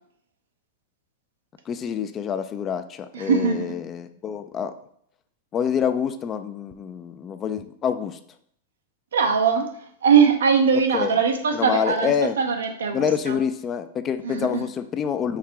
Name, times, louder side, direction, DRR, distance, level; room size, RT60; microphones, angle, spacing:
voice 1, 1.7-4.7 5.5-8.2 10.9-11.1 11.5-12.4 12.9-15.4, left 7 dB, 30° left, 10 dB, 0.4 m, -27 dB
voice 2, 3.1-3.8 9.1-9.7 10.0-13.4 14.2-14.6, right 6 dB, 85° right, 5 dB, 0.7 m, -21 dB
4.7 x 2.8 x 3.4 m, 0.66 s
hypercardioid pair, 110°, 0 cm